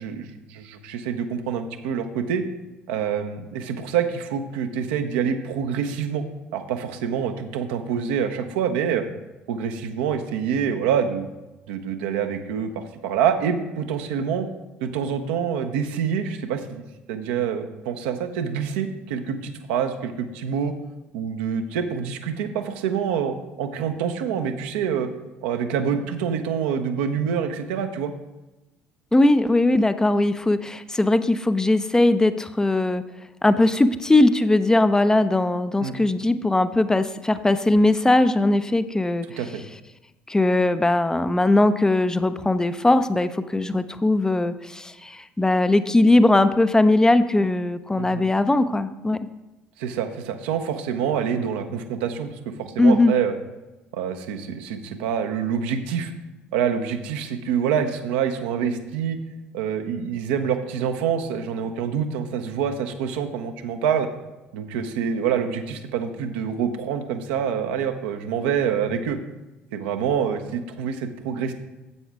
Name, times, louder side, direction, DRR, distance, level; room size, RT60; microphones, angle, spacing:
voice 1, 0.0-2.4 2.9-6.2 6.5-9.0 9.5-11.3 11.7-14.5 14.8-20.7 21.1-25.1 25.4-28.1 35.8-35.9 39.4-39.6 48.0-48.2 49.8-53.3 53.9-56.1 56.5-59.2 59.5-64.1 64.5-69.2 69.7-71.5, right 7 dB, 65° right, 7 dB, 0.7 m, -26 dB
voice 2, 29.1-33.0 33.4-39.3 40.3-49.2 52.8-53.1, left 2 dB, 10° left, 12 dB, 0.5 m, -19 dB
9.5 x 7.9 x 3.5 m, 1.0 s
figure-of-eight pair, 55°, 6 cm